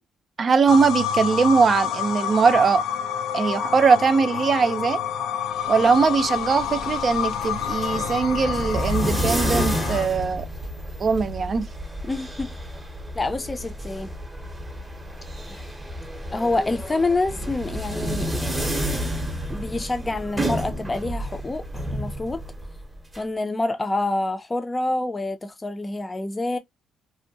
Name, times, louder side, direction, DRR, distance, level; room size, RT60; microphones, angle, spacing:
voice 1, 0.4-2.8 3.3-5.0 5.7-10.5 11.0-11.6, right 5 dB, 45° right, 0.5 m, -20 dB
sound 1, 0.7-10.1, left 8 dB, 80° left, 0.4 m, -28 dB
sound 2, 6.2-23.2, equal, 10° right, 0.8 m, -30 dB
voice 2, 12.0-12.5 13.1-14.1 15.5-15.7 16.3-18.5 19.5-21.7 21.9-22.4 23.2-26.6, left 2 dB, 20° left, 0.5 m, -27 dB
2.6 x 2.1 x 2.7 m
cardioid pair, 90°, 0 cm